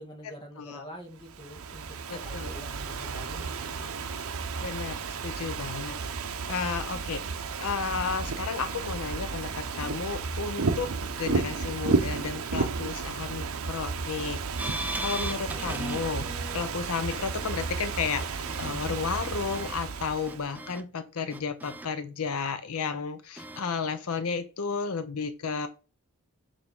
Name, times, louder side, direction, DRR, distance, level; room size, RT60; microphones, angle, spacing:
voice 1, 0.0-4.0, equal, 20° left, 1.8 m, -46 dB
Ocean / Fireworks, 1.2-20.5, right 4 dB, 65° right, 0.7 m, -33 dB
voice 2, 2.1-2.5 4.6-10.9 11.2-14.4 14.9-16.3 16.5-25.7, left 5 dB, 75° left, 0.6 m, -33 dB
sound 1, 14.6-16.7 17.1-17.7 18.2-18.7 19.2-19.8 20.3-20.8 21.3-21.9 23.4-23.6, right 1 dB, 5° right, 0.4 m, -37 dB
6.9 x 3.5 x 5.3 m
head